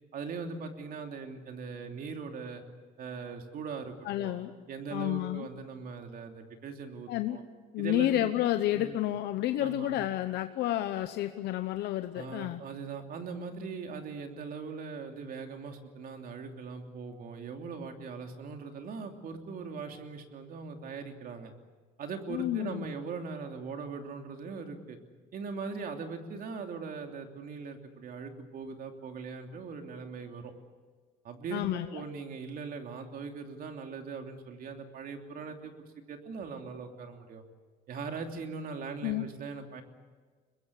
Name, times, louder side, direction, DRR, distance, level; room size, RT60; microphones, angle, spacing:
voice 1, 0.1-2.6 3.0-4.4 4.7-7.4 7.8-8.3 8.7-9.0 9.6-10.0 12.1-21.5 22.0-25.0 25.3-30.5 31.2-37.4 37.9-39.8, right 5 dB, 60° right, 4 dB, 3.0 m, -40 dB
voice 2, 4.0-4.5 4.9-5.5 7.1-7.4 7.7-12.6 22.3-22.9 31.5-31.9 39.0-39.3, left 13 dB, 80° left, 9 dB, 0.9 m, -30 dB
23.5 x 21.0 x 8.2 m, 1.4 s
cardioid pair, 110°, 17 cm